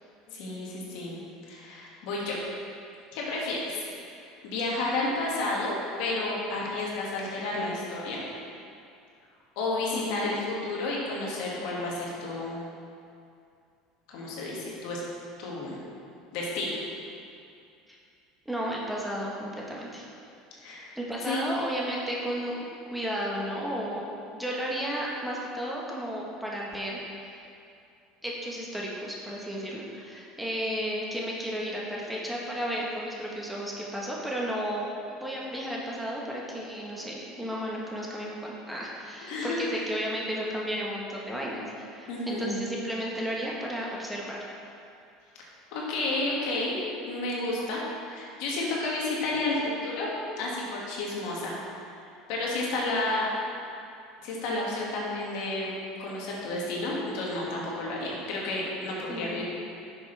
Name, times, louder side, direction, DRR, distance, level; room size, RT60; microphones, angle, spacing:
voice 1, 0.3-1.2 1.5-2.4 3.1-3.7 4.4-8.2 9.6-12.6 14.1-15.0 15.4-15.8 16.3-16.8 20.6-20.9 21.2-21.4 39.3-39.6 42.1-42.6 45.7-47.8 48.1-51.6 52.3-53.3 54.2-55.7 56.0-59.4, left 2 dB, 70° left, -4 dB, 2.1 m, -31 dB
voice 2, 9.9-10.3 18.4-20.1 20.9-27.3 28.2-44.4 59.1-59.4, equal, 5° right, -4 dB, 1.4 m, -33 dB
10.0 x 6.6 x 3.5 m, 2.5 s
supercardioid pair, 110°, 0 cm